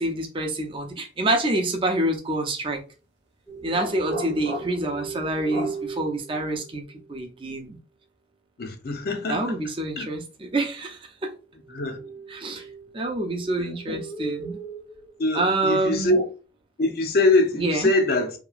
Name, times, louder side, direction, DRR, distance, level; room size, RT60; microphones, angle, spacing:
voice 1, 0.0-2.8 3.6-6.8 7.1-7.8 9.3-11.3 12.3-12.6 12.9-14.6 15.3-16.2 17.6-17.9, right 2 dB, 30° right, 0.5 m, -27 dB
sound 1, 3.5-7.2 11.6-16.0, right 4 dB, 10° left, 0.6 m, -40 dB
sound 2, 3.7-4.9 5.5-5.8, equal, 70° right, 0.8 m, -33 dB
voice 2, 8.6-9.6 10.0-10.1 11.7-12.0 13.7-14.0 15.2-16.2 16.8-18.3, left 2 dB, 55° left, 0.5 m, -23 dB
2.8 x 2.3 x 2.4 m
head